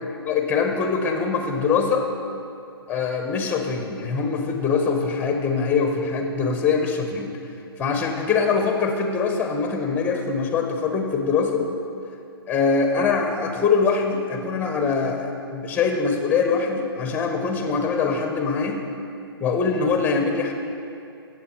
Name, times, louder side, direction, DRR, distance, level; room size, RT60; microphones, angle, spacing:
voice 1, 0.2-2.1 2.9-7.3 7.8-11.6 12.5-18.8 19.4-20.5, left 5 dB, 15° left, 4 dB, 1.3 m, -23 dB
15.5 x 7.8 x 4.7 m, 2.6 s
figure-of-eight pair, 125°, 13 cm